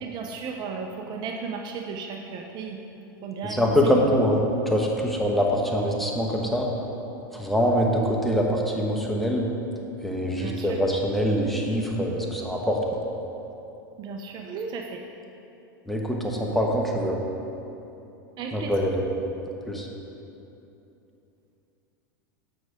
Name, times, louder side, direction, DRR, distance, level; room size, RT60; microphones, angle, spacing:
voice 1, 0.0-2.8 3.2-4.0 10.3-10.8 14.0-15.0 18.4-18.9, right 5 dB, 40° right, 3 dB, 0.7 m, -35 dB
voice 2, 3.5-4.4 4.7-6.7 7.3-9.5 10.0-13.0 15.9-17.1 18.5-19.0 19.7-19.9, equal, ahead, -1 dB, 1.1 m, -24 dB
7.8 x 6.2 x 5.1 m, 2.9 s
hypercardioid pair, 110°, 11 cm